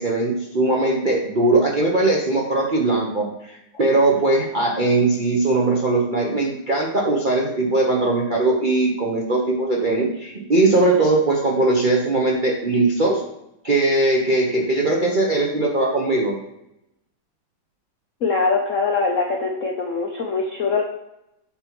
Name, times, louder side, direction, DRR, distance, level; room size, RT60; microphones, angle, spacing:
voice 1, 0.0-13.2 13.6-16.3, right 2 dB, 45° right, -2 dB, 0.6 m, -20 dB
voice 2, 18.2-20.8, left 4 dB, 65° left, 1 dB, 0.7 m, -22 dB
7.5 x 3.0 x 6.0 m, 0.85 s
omnidirectional pair, 2.3 m